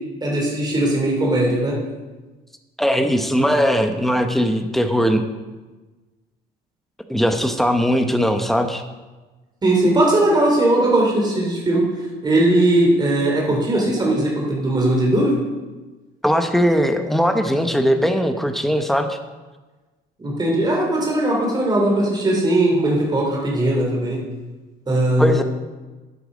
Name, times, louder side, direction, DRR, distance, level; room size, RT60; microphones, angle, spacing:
voice 1, 0.2-1.7 9.6-11.8 12.2-15.3 20.2-24.2 24.9-25.3, right 1 dB, 25° right, -2 dB, 3.4 m, -19 dB
voice 2, 2.8-5.2 7.1-8.8 16.2-19.2 25.2-25.4, equal, ahead, 6 dB, 1.0 m, -19 dB
10.5 x 8.5 x 5.1 m, 1.3 s
cardioid pair, 110°, 17 cm